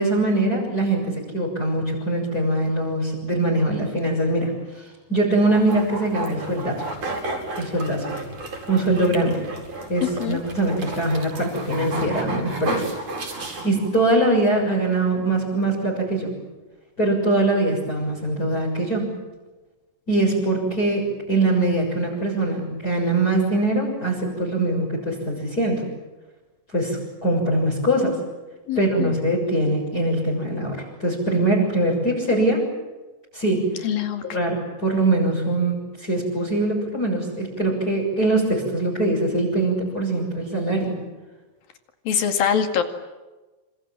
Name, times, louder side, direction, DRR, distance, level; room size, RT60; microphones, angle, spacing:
voice 1, 0.0-6.9 7.6-8.1 8.7-9.5 9.9-12.9 13.6-16.3 17.0-19.1 20.1-25.8 26.7-28.2 28.8-32.7 33.3-33.9 34.3-41.0, right 2 dB, 20° left, -3 dB, 6.9 m, -22 dB
sound 1, 5.5-14.1, right 2 dB, 40° right, 6.1 m, -33 dB
voice 2, 10.0-10.4 28.7-29.1 33.8-34.2 42.1-42.8, left 8 dB, 55° left, 7 dB, 3.6 m, -23 dB
27.5 x 26.5 x 7.5 m, 1.2 s
omnidirectional pair, 5.5 m